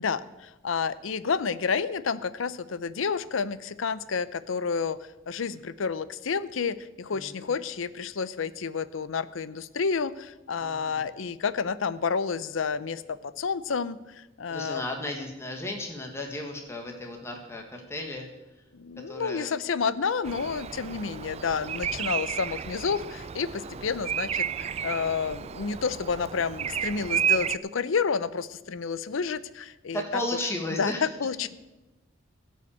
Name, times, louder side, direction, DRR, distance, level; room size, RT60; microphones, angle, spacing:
voice 1, 0.0-14.8 18.7-30.2 30.8-31.5, left 5 dB, 80° left, 15 dB, 0.6 m, -30 dB
voice 2, 7.1-7.5 10.6-11.0 14.5-18.3 19.1-19.5 23.6-23.7 29.9-31.1, left 1 dB, 15° left, 2 dB, 1.5 m, -34 dB
Bird vocalization bird call bird song, 20.2-27.6, right 8 dB, 30° right, 0.3 m, -32 dB
16.0 x 5.7 x 8.5 m, 1.0 s
head